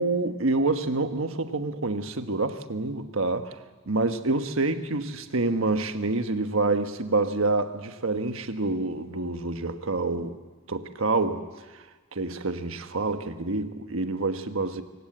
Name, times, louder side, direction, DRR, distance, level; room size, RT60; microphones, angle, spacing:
voice 1, 0.0-3.5 3.9-10.4 10.7-11.5 12.1-14.8, right 3 dB, 75° right, 1.3 m, -27 dB
25.5 x 16.5 x 7.9 m
head